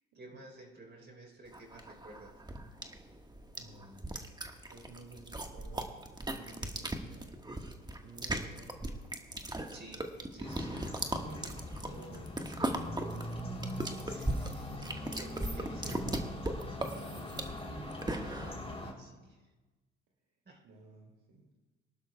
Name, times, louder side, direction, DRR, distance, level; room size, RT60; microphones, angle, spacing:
voice 1, 0.1-2.4 9.7-10.8 14.0-16.1 16.7-16.8 18.7-19.5 20.4-20.7, right 1 dB, 30° right, 1 dB, 3.9 m, -53 dB
sound 1, 1.5-18.5, right 1 dB, 15° right, 1.5 m, -38 dB
voice 2, 3.5-4.2 4.7-7.4 8.0-8.8 11.1-13.0 17.1-18.9 20.6-21.5, right 3 dB, 65° right, -2 dB, 2.5 m, -54 dB
sound 2, 10.4-18.9, left 1 dB, 15° left, 3.4 m, -42 dB
24.0 x 11.5 x 2.3 m, 1.2 s
hypercardioid pair, 60°, 33 cm